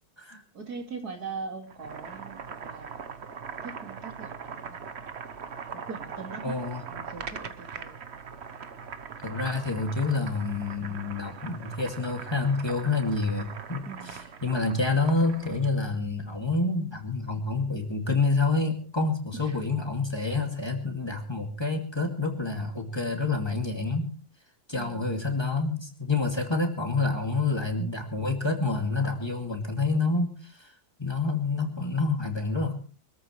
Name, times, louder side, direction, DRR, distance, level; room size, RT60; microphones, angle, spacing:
voice 1, 0.5-3.2 3.6-4.8 5.7-6.6 6.9-8.0 13.9-14.3 19.3-19.6 24.7-25.1, right 5 dB, 85° right, 4 dB, 2.9 m, -41 dB
Boiling, 1.6-15.7, right 6 dB, 50° right, 1.2 m, -41 dB
voice 2, 6.4-6.8 9.2-13.8 14.4-24.1 24.7-30.7 31.0-32.7, left 3 dB, 15° left, 2 dB, 2.4 m, -28 dB
25.0 x 13.5 x 3.3 m, 0.38 s
omnidirectional pair, 1.6 m